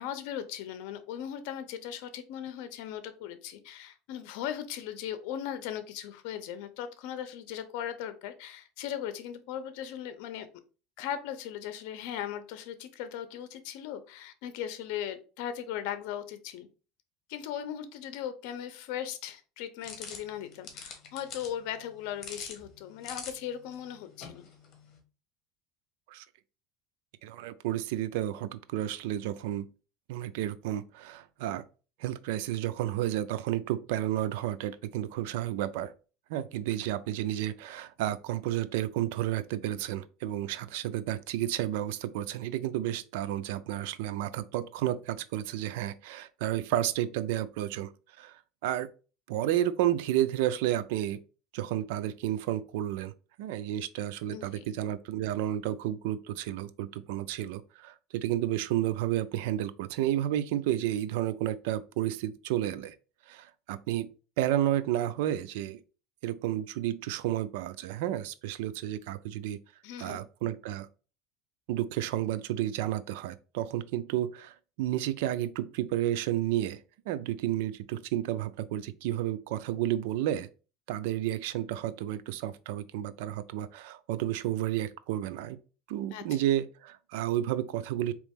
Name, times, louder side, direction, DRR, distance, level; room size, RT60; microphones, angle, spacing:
voice 1, 0.0-10.5 11.0-16.7 17.3-24.5 54.3-54.7 69.8-70.2 86.1-86.2, left 10 dB, 75° left, 0.7 m, -38 dB
sound 1, 19.8-25.0, left 5 dB, 40° left, 1.4 m, -46 dB
voice 2, 27.2-29.7 30.1-31.6 32.0-35.9 36.3-47.9 48.2-48.9 49.3-51.2 51.5-53.1 53.4-62.9 63.3-64.1 64.4-65.8 66.2-69.6 70.0-70.9 71.7-76.8 77.1-80.5 80.9-85.6 85.9-88.1, right 13 dB, 80° right, 0.4 m, -31 dB
4.1 x 3.0 x 3.5 m
supercardioid pair, 135°, 0 cm